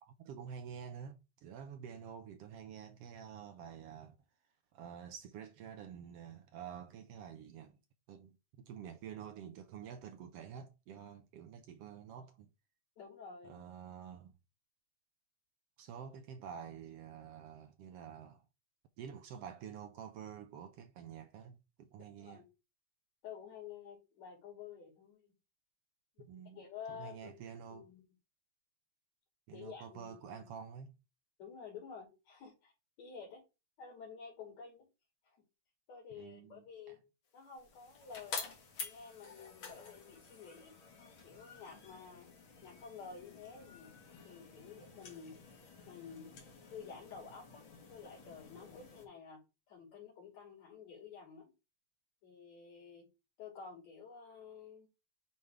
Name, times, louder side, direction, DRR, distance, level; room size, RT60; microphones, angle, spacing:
voice 1, 0.0-4.2 4.7-7.8 8.1-12.5 13.4-14.4 15.8-18.4 19.0-22.4 26.3-26.6 26.9-27.9 29.5-30.9 36.1-36.6, right 8 dB, 75° right, 1.5 m, -49 dB
voice 2, 13.0-13.6 22.2-22.5 23.2-25.4 26.2-27.3 27.7-28.0 29.5-30.5 31.4-32.7 33.0-33.4 33.8-34.9 35.3-35.4 35.9-37.0 37.3-42.3 42.6-44.0 44.2-45.6 45.9-46.4 46.7-49.4 49.7-51.5 52.2-53.1 53.4-54.9, left 6 dB, 70° left, 3.8 m, -51 dB
sound 1, 37.4-49.1, left 5 dB, 50° left, 2.0 m, -50 dB
9.5 x 3.3 x 3.5 m
omnidirectional pair, 3.3 m